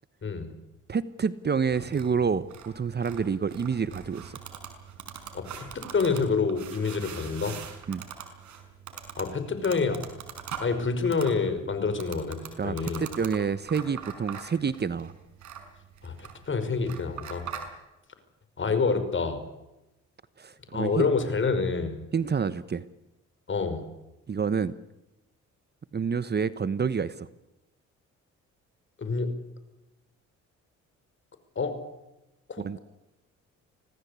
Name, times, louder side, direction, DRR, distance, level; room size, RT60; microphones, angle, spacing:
voice 1, 0.9-4.4 7.9-8.1 12.6-15.1 20.4-21.1 22.1-22.8 24.3-24.7 25.9-27.3 32.6-32.8, right 6 dB, 35° right, 15 dB, 1.1 m, -28 dB
sound 1, 1.7-17.7, right 7 dB, 70° right, 5.7 m, -43 dB
voice 2, 5.3-7.6 9.2-10.0 10.6-13.0 16.0-17.4 18.6-19.4 20.7-22.0 23.5-23.8 29.0-29.3 31.6-31.8 32.5-32.6, left 4 dB, 40° left, 10 dB, 5.5 m, -27 dB
26.0 x 18.5 x 8.4 m, 0.94 s
cardioid pair, 90°, 30 cm